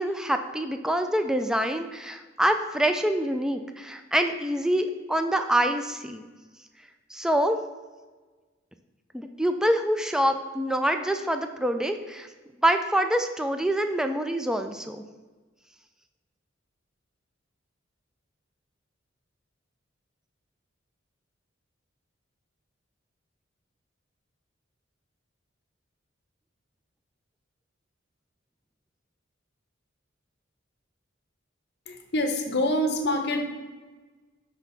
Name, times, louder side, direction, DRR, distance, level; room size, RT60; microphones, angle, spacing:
voice 1, 0.0-6.3 7.1-7.6 9.1-12.3 12.6-15.0, right 1 dB, 5° right, 7 dB, 0.3 m, -26 dB
voice 2, 31.9-33.4, left 1 dB, 60° left, 5 dB, 0.8 m, -26 dB
5.9 x 3.4 x 5.7 m, 1.3 s
head